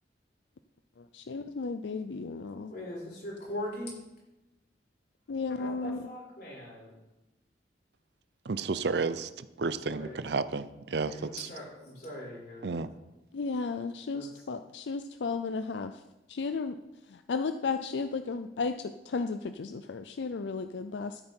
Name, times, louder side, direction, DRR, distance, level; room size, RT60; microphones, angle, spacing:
voice 1, 1.0-2.7 5.3-6.0 13.3-16.0 16.3-16.8 17.1-21.2, left 4 dB, 85° left, 9 dB, 0.5 m, -34 dB
voice 2, 2.6-4.0 5.6-6.9 9.6-10.2 11.0-12.8 14.1-14.5, left 1 dB, 60° left, -6 dB, 5.0 m, -41 dB
voice 3, 8.4-11.5 12.6-12.9, right 4 dB, 70° right, 14 dB, 0.6 m, -32 dB
12.5 x 9.5 x 4.5 m, 1.0 s
head